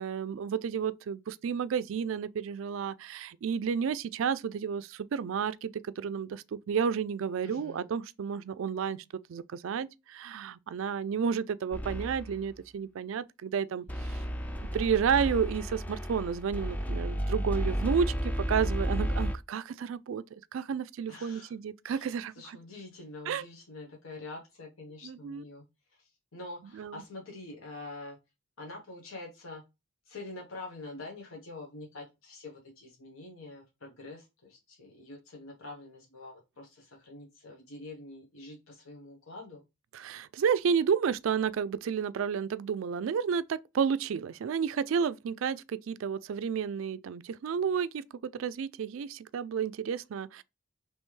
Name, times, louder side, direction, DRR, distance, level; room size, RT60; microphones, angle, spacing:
voice 1, 0.0-9.0 9.3-14.2 14.7-22.6 23.3-23.4 25.0-25.4 26.7-27.0 39.9-48.0 48.3-50.4, right 7 dB, 70° right, 0.3 m, -31 dB
voice 2, 7.4-7.9 21.1-21.5 21.8-25.6 25.9-28.2 28.6-29.6 30.1-39.6, left 2 dB, 75° left, 1.2 m, -46 dB
sound 1, 11.7-12.4 13.9-19.4, equal, 10° left, 0.4 m, -32 dB
5.3 x 3.0 x 3.2 m
head